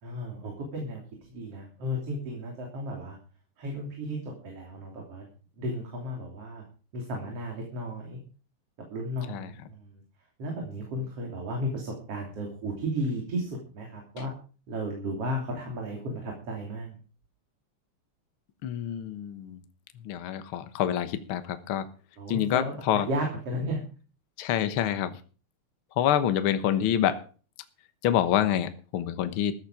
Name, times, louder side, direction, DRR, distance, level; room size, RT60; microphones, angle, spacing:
voice 1, 0.0-1.0 1.3-3.2 3.6-5.3 5.6-6.6 6.9-8.2 8.9-10.0 10.4-14.3 14.7-17.0 22.2-23.8, equal, 50° right, 0 dB, 4.0 m, -34 dB
voice 2, 18.6-19.6 20.0-21.9 22.3-23.1 24.4-25.1 26.0-27.2 28.0-29.5, left 10 dB, 55° left, 10 dB, 1.6 m, -27 dB
14.0 x 12.0 x 5.0 m, 0.38 s
omnidirectional pair, 3.6 m